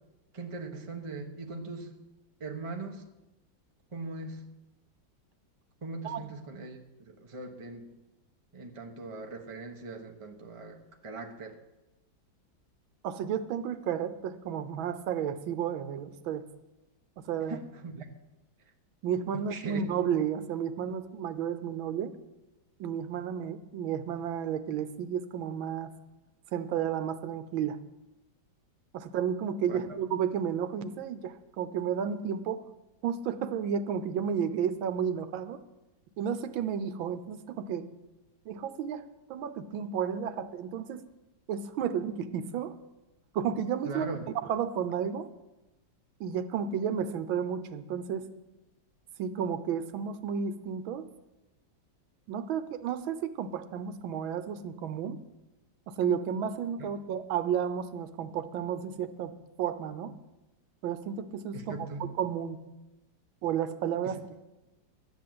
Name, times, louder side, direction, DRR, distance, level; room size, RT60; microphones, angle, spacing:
voice 1, 0.3-1.9 2.4-3.0 3.9-4.5 5.8-6.8 7.1-7.8 8.5-11.6 17.5-18.1 19.3-19.8 29.7-30.0 43.8-44.2 56.8-56.9 61.5-62.1 64.0-64.1, right 3 dB, 25° right, 4 dB, 0.8 m, -40 dB
voice 2, 13.0-16.4 17.2-17.6 19.0-22.1 22.8-25.9 26.5-27.8 28.9-32.6 33.0-35.6 36.2-37.9 38.5-39.0 39.3-41.0 41.5-42.7 43.3-44.1 44.5-45.3 46.2-48.3 49.2-51.1 52.3-55.2 55.9-59.3 59.6-60.1 60.8-61.6 62.0-62.6 63.4-64.3, right 8 dB, 85° right, 11 dB, 1.6 m, -32 dB
12.5 x 9.5 x 7.7 m, 1.0 s
omnidirectional pair, 2.1 m